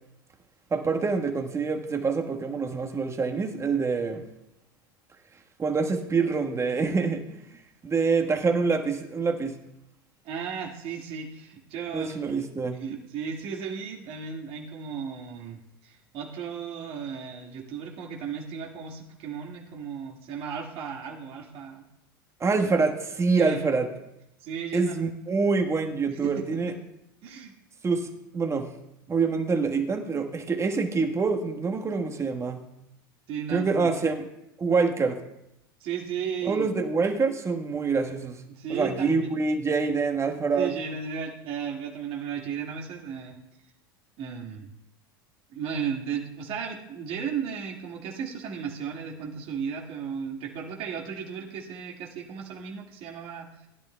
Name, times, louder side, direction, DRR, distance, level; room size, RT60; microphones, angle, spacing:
voice 1, 0.7-4.3 5.6-7.5 7.8-9.6 11.9-12.8 22.4-23.9 24.7-26.7 27.8-28.7 29.1-32.6 33.5-34.1 34.6-35.2 36.4-38.4 38.7-40.7, right 4 dB, 25° right, 4 dB, 1.4 m, -26 dB
voice 2, 10.2-12.1 12.7-21.9 23.4-23.6 24.4-25.0 26.1-26.8 27.2-27.5 33.3-33.9 35.8-36.7 38.5-39.3 40.5-43.4 44.2-44.7 45.5-53.7, right 7 dB, 50° right, 0 dB, 2.0 m, -35 dB
19.5 x 10.5 x 2.3 m, 0.86 s
hypercardioid pair, 90°, 12 cm